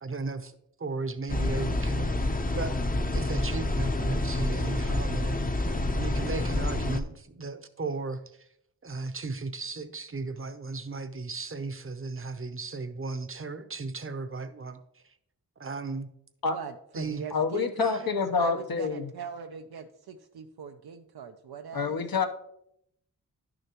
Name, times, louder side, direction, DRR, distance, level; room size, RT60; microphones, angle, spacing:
voice 1, 0.0-2.1 2.6-2.8 3.1-5.4 5.9-8.5 8.8-15.2 15.6-16.1 16.9-17.2 17.8-18.0, right 3 dB, 35° right, 10 dB, 0.7 m, -35 dB
sound 1, 1.3-7.0, left 2 dB, 25° left, 0.7 m, -28 dB
voice 2, 16.5-21.9, right 6 dB, 85° right, 5 dB, 0.6 m, -41 dB
voice 3, 17.3-19.1 21.7-22.3, left 5 dB, 70° left, 6 dB, 0.9 m, -27 dB
11.0 x 6.5 x 2.9 m, 0.75 s
wide cardioid pair, 60°, 37 cm